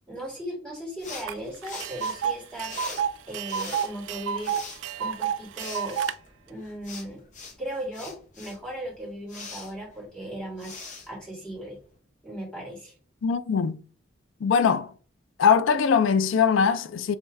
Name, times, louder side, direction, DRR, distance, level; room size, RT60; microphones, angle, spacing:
voice 1, 0.1-4.6 5.0-6.0 6.5-7.2 7.6-11.8 12.2-12.9, right 1 dB, 5° left, 1.8 m, -37 dB
sound 1, 1.0-11.9, left 4 dB, 40° left, 1.0 m, -44 dB
Tick, 1.3-1.4 1.6-6.1, right 8 dB, 70° right, 0.3 m, -30 dB
voice 2, 13.2-13.8 14.4-14.9 15.4-17.2, left 6 dB, 90° left, 0.4 m, -21 dB
4.9 x 3.1 x 3.4 m
head